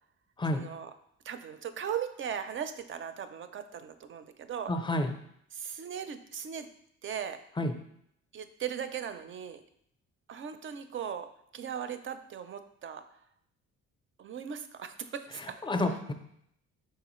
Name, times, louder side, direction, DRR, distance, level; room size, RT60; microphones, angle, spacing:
voice 1, 0.5-0.9 1.2-4.7 5.5-6.7 7.0-7.4 8.3-9.6 10.3-13.0 14.2-15.6, right 8 dB, 40° right, 10 dB, 0.4 m, -38 dB
voice 2, 4.7-5.1 7.6-7.7 15.6-16.1, left 1 dB, 15° left, 6 dB, 0.5 m, -29 dB
4.7 x 3.7 x 3.0 m, 0.72 s
cardioid pair, 90°, 30 cm